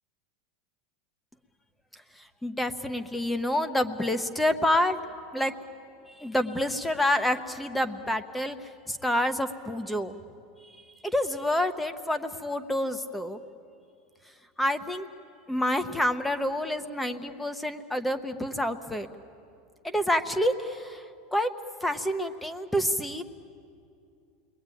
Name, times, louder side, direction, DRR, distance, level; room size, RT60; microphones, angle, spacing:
voice 1, 2.4-5.0 5.3-5.5 6.1-8.6 8.9-10.1 11.0-13.4 14.6-15.1 15.5-19.1 19.8-21.0 21.3-21.5 21.8-23.2, left 1 dB, 5° left, 10 dB, 1.0 m, -28 dB
30.0 x 21.5 x 9.2 m, 2.5 s
supercardioid pair, 165°, 0 cm